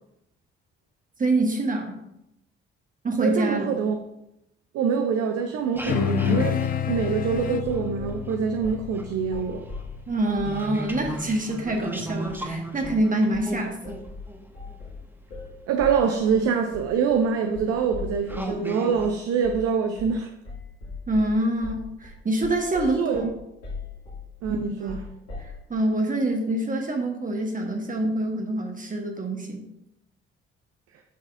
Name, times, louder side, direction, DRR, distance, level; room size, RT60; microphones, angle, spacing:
voice 1, 1.2-2.0 3.0-3.8 10.1-14.0 21.1-23.3 24.8-25.0 25.7-29.6, right 1 dB, 25° right, 1.2 m, -26 dB
voice 2, 3.2-4.0 4.7-9.7 15.7-20.3 22.9-23.3 24.4-25.0, right 6 dB, 55° right, 0.7 m, -25 dB
sound 1, 5.6-8.4 8.7-15.5 16.4-16.5 17.1-17.3 17.8-17.9 18.3-19.1, right 1 dB, 5° right, 1.2 m, -36 dB
sound 2, 5.9-10.6, left 10 dB, 30° left, 0.4 m, -29 dB
sound 3, 7.3-8.2 8.6-8.9 9.2-10.6 11.0-11.3 11.6-11.9 12.2-12.5 12.8-13.1 13.3-18.5 18.9-19.1 19.4-19.7 20.0-20.2 20.4-25.6, left 3 dB, 80° left, 2.1 m, -39 dB
9.3 x 6.1 x 2.6 m
figure-of-eight pair, 45°, 30 cm